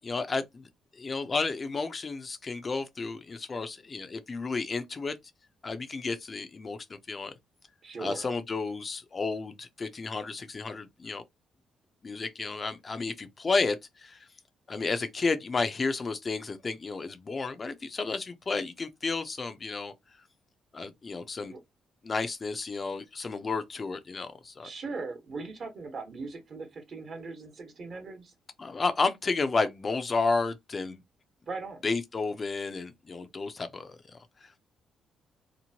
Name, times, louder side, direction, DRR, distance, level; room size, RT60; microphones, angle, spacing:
voice 1, 0.0-0.6 1.0-5.1 5.6-7.3 8.0-11.2 12.0-14.2 14.7-19.9 20.7-21.5 22.0-24.7 28.6-31.0 31.8-34.5, left 4 dB, 35° left, 0.4 m, -32 dB
voice 2, 7.8-8.3 21.4-21.6 24.6-28.3 31.5-31.8, right 4 dB, 50° right, 1.0 m, -39 dB
2.9 x 2.1 x 2.7 m
cardioid pair, 90°, 0 cm